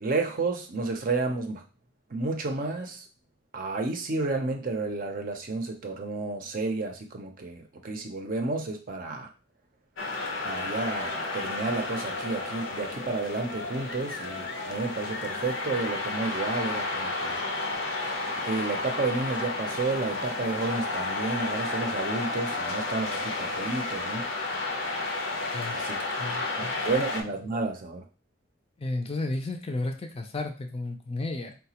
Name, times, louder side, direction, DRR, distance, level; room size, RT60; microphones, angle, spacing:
voice 1, 0.0-1.6 2.1-3.0 3.5-9.3 10.4-17.4 18.4-24.2 25.7-26.0 26.6-28.0, right 3 dB, 45° right, 4 dB, 0.6 m, -31 dB
sound 1, 10.0-27.2, left 2 dB, 80° left, 0.6 m, -32 dB
voice 2, 26.2-27.1 28.8-31.6, left 2 dB, 30° left, 4 dB, 0.4 m, -33 dB
4.0 x 2.2 x 2.8 m, 0.35 s
head